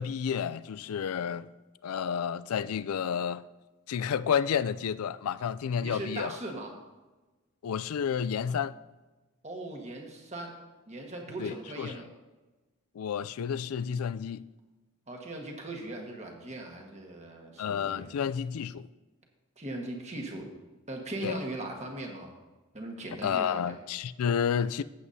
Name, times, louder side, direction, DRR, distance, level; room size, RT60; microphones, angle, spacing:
voice 1, 0.0-1.5 1.8-3.4 3.9-6.4 7.6-8.7 11.4-11.9 13.0-14.4 17.6-18.9 21.2-21.4 23.2-24.8, left 7 dB, 75° left, 0.4 m, -30 dB
voice 2, 5.8-6.8 9.4-10.5 10.9-12.1 15.1-18.1 19.6-20.5 20.9-22.3 22.7-23.8, right 2 dB, 30° right, 1.4 m, -39 dB
15.0 x 8.0 x 2.7 m
head